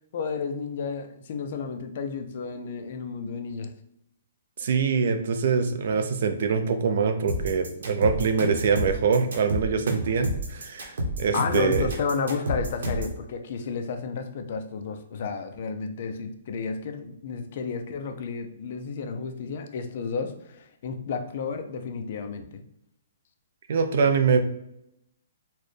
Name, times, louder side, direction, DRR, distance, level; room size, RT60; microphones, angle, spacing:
voice 1, 0.1-3.7 11.3-22.6, left 5 dB, 35° left, 6 dB, 0.4 m, -32 dB
voice 2, 4.6-11.9 23.7-24.4, right 5 dB, 45° right, 8 dB, 0.4 m, -24 dB
sound 1, 7.3-13.2, equal, 70° right, 1.0 m, -29 dB
4.1 x 2.1 x 3.1 m, 0.79 s
hypercardioid pair, 180°, 0 cm